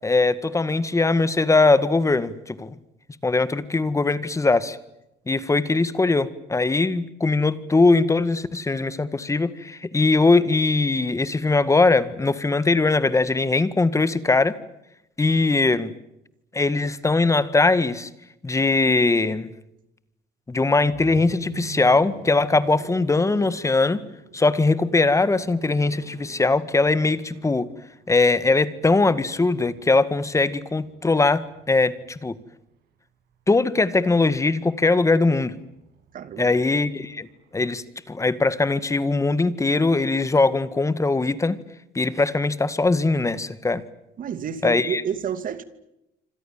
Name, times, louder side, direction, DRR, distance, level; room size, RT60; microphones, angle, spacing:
voice 1, 0.0-2.7 3.2-4.8 5.3-14.6 15.2-15.9 16.5-18.1 18.4-19.5 20.5-24.0 24.3-27.7 28.1-32.3 33.5-35.6 36.4-37.3 37.5-41.6 41.9-43.8 44.6-45.0, left 3 dB, 20° left, 1.9 m, -21 dB
sound 1, 20.7-32.7 34.0-37.6, right 8 dB, 75° right, 6.4 m, -46 dB
voice 2, 36.1-36.5 44.2-45.6, right 8 dB, 55° right, 2.6 m, -30 dB
27.0 x 26.5 x 7.4 m
cardioid pair, 110°, 17 cm